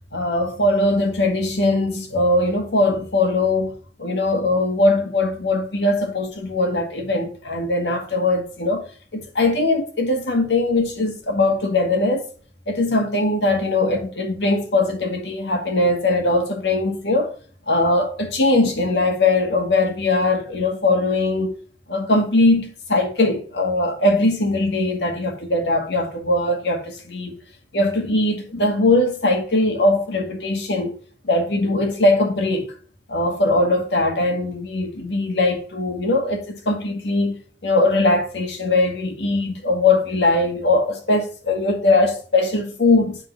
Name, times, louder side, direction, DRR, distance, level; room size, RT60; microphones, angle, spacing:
voice 1, 0.1-8.8 9.1-12.2 12.7-17.3 17.7-21.6 21.9-27.4 27.7-31.0 31.2-32.7 33.1-37.4 37.6-43.2, left 2 dB, 90° left, 2.0 m, -20 dB
9.0 x 3.8 x 6.0 m
head